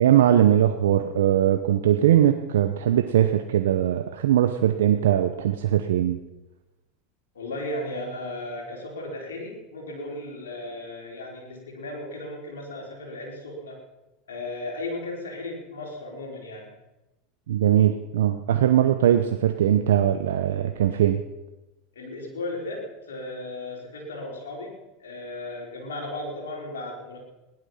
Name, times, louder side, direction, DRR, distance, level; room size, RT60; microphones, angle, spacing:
voice 1, 0.0-6.2 17.5-21.2, right 11 dB, 80° right, 7 dB, 0.9 m, -20 dB
voice 2, 7.3-13.8 14.3-16.7 21.9-27.2, left 2 dB, 90° left, 0 dB, 4.5 m, -35 dB
17.0 x 11.5 x 5.8 m, 1.0 s
hypercardioid pair, 100°, 0 cm